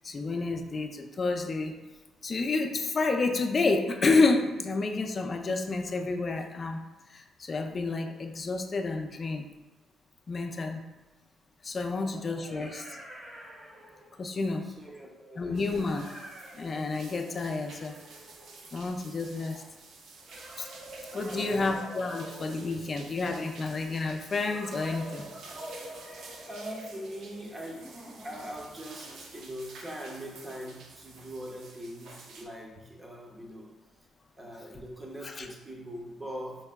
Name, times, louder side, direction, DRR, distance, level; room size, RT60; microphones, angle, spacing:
voice 1, 0.0-1.7 2.2-6.8 7.1-9.4 10.3-10.8 11.6-13.0 14.2-14.6 15.4-16.1 16.5-17.9 18.7-19.6 20.6-20.7 21.1-25.3 35.2-35.5, left 3 dB, 40° left, 4 dB, 0.4 m, -29 dB
sound 1, 10.5-10.6 11.9-14.3 15.5-19.0 20.2-23.3 24.4-28.7, right 1 dB, 45° right, 1.4 m, -47 dB
voice 2, 12.0-12.3 14.5-15.6 21.1-21.7 22.7-22.8 26.5-27.8 28.2-33.7 34.4-36.6, equal, 25° right, -1 dB, 0.9 m, -42 dB
sound 2, 15.5-32.5, right 3 dB, 70° right, 0.6 m, -50 dB
4.6 x 3.4 x 2.2 m, 1.1 s
cardioid pair, 90°, 0 cm